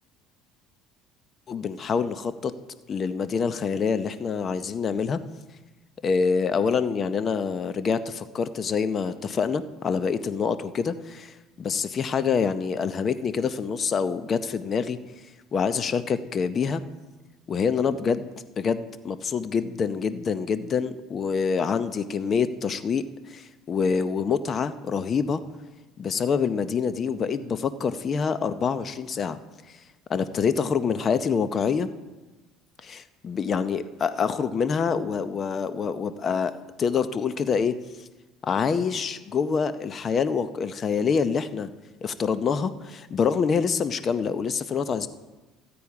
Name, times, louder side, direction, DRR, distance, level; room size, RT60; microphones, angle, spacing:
voice 1, 1.5-2.5 2.9-5.2 6.0-15.0 15.5-16.8 17.5-18.3 18.6-25.4 26.0-29.4 30.1-31.9 32.8-37.7 38.4-41.7 42.0-45.1, left 6 dB, 40° left, 12 dB, 0.7 m, -26 dB
15.0 x 8.6 x 4.8 m, 1.2 s
supercardioid pair, 100°, 0 cm